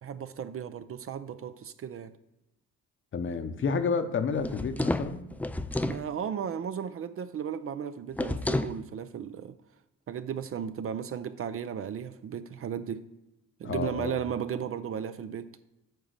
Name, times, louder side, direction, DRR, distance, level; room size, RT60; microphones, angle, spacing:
voice 1, 0.0-2.1 5.8-9.6 10.1-13.1 13.6-15.5, right 8 dB, 45° right, 12 dB, 0.5 m, -35 dB
voice 2, 3.1-5.2 13.6-14.1, left 5 dB, 40° left, 9 dB, 0.8 m, -30 dB
sound 1, 4.4-6.0 8.1-8.8, left 1 dB, 5° left, 0.3 m, -30 dB
8.9 x 3.0 x 6.5 m, 0.96 s
cardioid pair, 90°, 30 cm